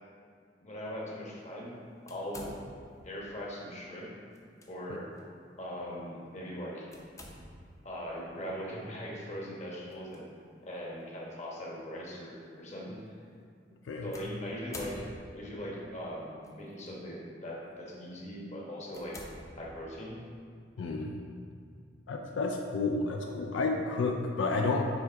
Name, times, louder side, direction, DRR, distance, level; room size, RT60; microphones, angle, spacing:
voice 1, 0.6-1.7 2.1-2.4 3.0-4.1 4.7-5.1 5.6-6.9 7.8-10.2 10.6-13.0 14.0-19.2 19.6-20.2, equal, 40° left, -4 dB, 1.1 m, -40 dB
sound 1, 2.1-3.1 4.3-4.7 5.2-5.3 6.9-7.8 9.9-10.2 11.0-11.1 14.1-15.5 16.4-16.9 17.5-17.7 18.2-18.3 18.9-20.1, left 1 dB, 15° left, 0.6 m, -48 dB
voice 2, 20.8-21.2 22.1-24.9, left 3 dB, 85° left, 2 dB, 0.4 m, -31 dB
6.2 x 3.4 x 4.5 m, 2.2 s
head